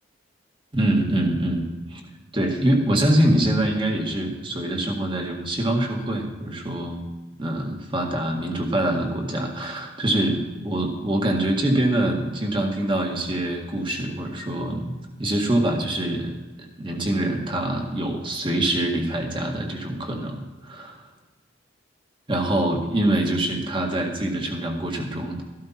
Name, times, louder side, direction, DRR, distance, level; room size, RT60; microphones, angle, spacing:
voice 1, 0.7-2.0 2.3-7.0 7.4-16.4 16.8-21.0 22.3-25.4, right 1 dB, 25° right, 1 dB, 1.9 m, -24 dB
14.0 x 12.5 x 4.4 m, 1.2 s
head